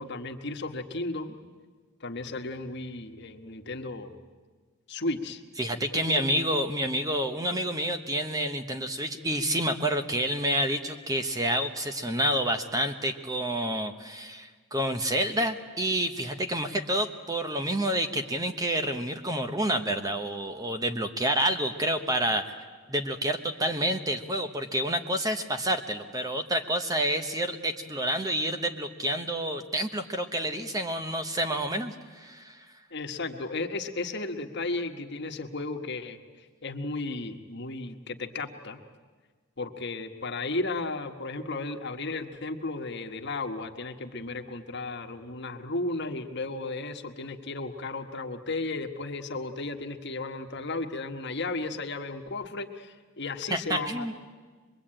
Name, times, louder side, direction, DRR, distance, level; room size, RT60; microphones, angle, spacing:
voice 1, 0.0-1.3 2.0-4.1 4.9-5.4 5.9-6.2 32.9-36.2 36.6-38.8 39.6-54.1, left 3 dB, 55° left, 5 dB, 1.4 m, -34 dB
voice 2, 5.6-22.6 22.9-32.7 53.5-54.1, right 1 dB, 15° right, 7 dB, 1.0 m, -29 dB
24.5 x 22.0 x 8.9 m, 1.5 s
head